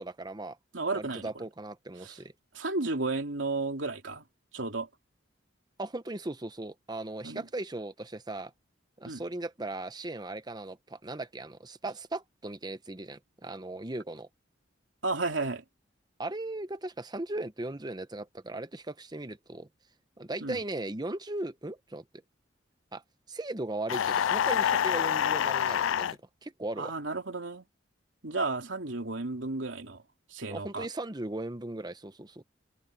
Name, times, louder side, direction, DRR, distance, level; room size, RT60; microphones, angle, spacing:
voice 1, 0.0-0.6 0.9-2.3 5.8-8.5 9.0-14.3 16.2-19.7 20.2-22.0 22.9-23.0 23.3-26.9 30.5-32.4, right 2 dB, 20° right, 0.9 m, -38 dB
voice 2, 0.7-1.4 2.0-2.1 2.5-4.2 4.5-4.9 7.2-7.4 9.1-9.2 15.0-15.6 20.4-20.6 26.8-27.6 28.2-30.0 30.3-30.9, right 3 dB, 80° right, 3.0 m, -33 dB
sound 1, 23.9-26.1, left 9 dB, 85° left, 0.4 m, -27 dB
head